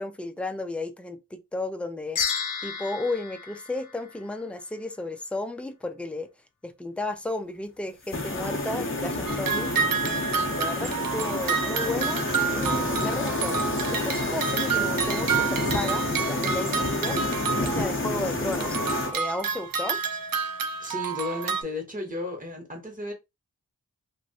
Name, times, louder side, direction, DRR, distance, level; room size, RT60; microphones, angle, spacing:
voice 1, 0.0-2.2 2.6-6.3 6.6-9.7 10.2-12.2 12.5-13.6 13.9-17.2 17.6-18.8 19.1-20.0, left 2 dB, 5° left, 0.5 m, -33 dB
sound 1, 2.2-4.6, left 6 dB, 60° left, 0.5 m, -32 dB
sound 2, 8.1-19.1, left 2 dB, 35° left, 0.8 m, -29 dB
sound 3, 9.3-18.1 18.5-21.6, right 6 dB, 70° right, 0.5 m, -29 dB
voice 2, 20.8-23.1, left 2 dB, 20° right, 1.3 m, -34 dB
2.9 x 2.6 x 2.8 m
wide cardioid pair, 50°, 36 cm